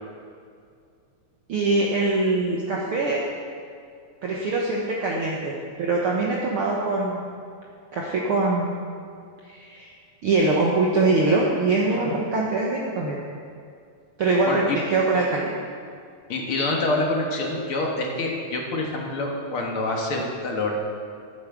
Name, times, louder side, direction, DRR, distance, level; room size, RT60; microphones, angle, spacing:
voice 1, 1.5-3.2 4.2-7.2 7.9-8.7 9.5-9.9 10.2-13.2 14.2-14.6 14.9-15.5, right 3 dB, 55° right, -3 dB, 1.8 m, -23 dB
voice 2, 11.9-12.2 14.5-14.8 16.3-20.7, left 2 dB, 50° left, 0 dB, 2.2 m, -26 dB
12.5 x 9.5 x 6.1 m, 2.3 s
omnidirectional pair, 3.3 m